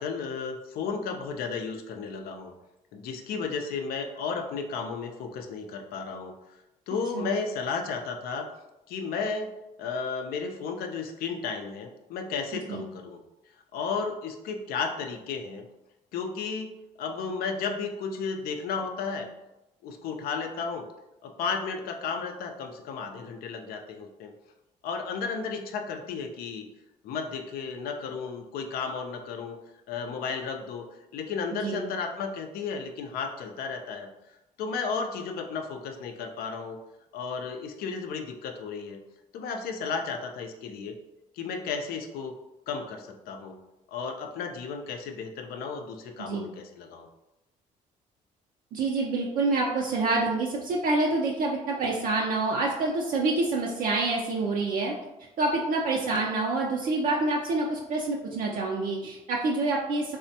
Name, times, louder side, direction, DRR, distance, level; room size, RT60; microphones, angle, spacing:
voice 1, 0.0-2.5 2.9-6.3 6.9-8.5 8.9-9.5 9.8-13.2 13.7-15.7 16.1-16.7 17.0-19.3 19.8-20.9 21.2-24.3 24.8-26.7 27.0-29.6 29.9-30.9 31.1-34.1 34.6-36.8 37.1-39.0 39.3-41.0 41.3-42.3 42.7-43.6 43.9-47.1, left 5 dB, 70° left, 5 dB, 0.4 m, -33 dB
voice 2, 48.7-54.9 55.4-60.2, right 3 dB, 60° right, -2 dB, 0.5 m, -27 dB
3.3 x 2.1 x 2.7 m, 0.94 s
supercardioid pair, 70°, 16 cm